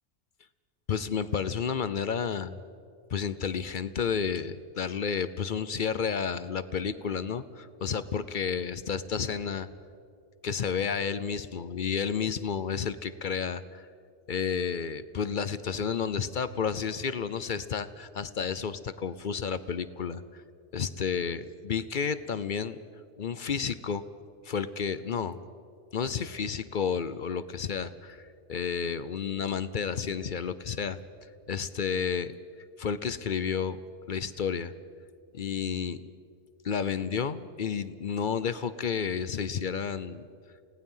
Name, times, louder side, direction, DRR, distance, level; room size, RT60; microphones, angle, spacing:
voice 1, 0.9-2.6 3.1-9.7 10.4-13.9 14.3-20.4 20.7-22.8 23.2-24.0 24.4-25.4 25.9-31.0 31.5-32.3 32.8-33.8 34.1-34.7 35.3-36.0 36.6-40.3, left 6 dB, 50° left, 14 dB, 0.7 m, -31 dB
29.5 x 18.0 x 5.6 m, 2.3 s
omnidirectional pair, 1.3 m